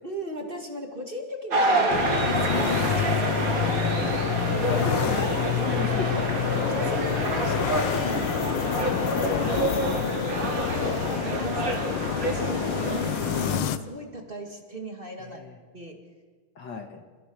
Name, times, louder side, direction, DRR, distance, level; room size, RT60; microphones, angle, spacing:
voice 1, 0.0-3.6 4.4-4.6 6.5-7.6 7.9-10.1 10.6-10.8 11.2-15.4 15.7-16.0, right 1 dB, 25° right, 2 dB, 2.2 m, -38 dB
sound 1, 1.5-13.6, right 3 dB, 40° right, 2.5 m, -28 dB
sound 2, 1.9-13.8, left 10 dB, 75° left, 1.6 m, -28 dB
voice 2, 3.5-4.1 4.6-6.4 10.7-11.0 15.2-15.6 16.6-17.0, left 4 dB, 55° left, 5 dB, 2.2 m, -35 dB
28.5 x 15.0 x 6.3 m, 1.5 s
omnidirectional pair, 2.4 m